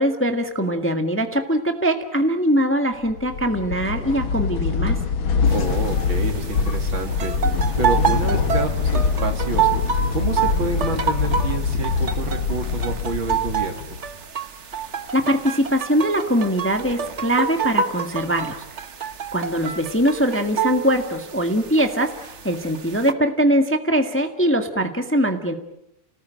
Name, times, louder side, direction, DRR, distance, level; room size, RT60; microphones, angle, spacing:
voice 1, 0.0-5.0 15.1-18.6 19.3-25.5, equal, 5° left, 5 dB, 1.5 m, -22 dB
sound 1, 3.1-14.1, left 5 dB, 70° left, 2.3 m, -23 dB
sound 2, 5.5-23.1, right 7 dB, 40° right, 1.2 m, -28 dB
voice 2, 5.5-7.3 7.8-9.7 10.1-13.9, right 3 dB, 65° right, 5 dB, 3.4 m, -28 dB
29.5 x 18.5 x 9.2 m, 0.83 s
omnidirectional pair, 2.3 m